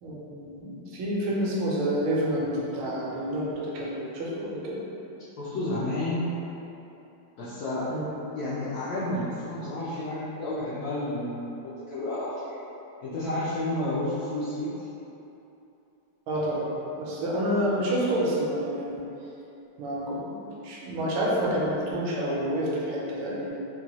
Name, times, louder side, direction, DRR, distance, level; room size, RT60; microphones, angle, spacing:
voice 1, 0.0-4.8 7.9-8.1 16.3-16.6 17.0-19.0 19.8-20.3 20.6-23.6, right 1 dB, 75° right, -5 dB, 1.4 m, -28 dB
voice 2, 5.4-6.3 7.4-7.9 8.3-12.6 13.0-14.7, left 1 dB, 90° left, -10 dB, 0.8 m, -31 dB
4.3 x 2.2 x 2.9 m, 2.9 s
omnidirectional pair, 2.3 m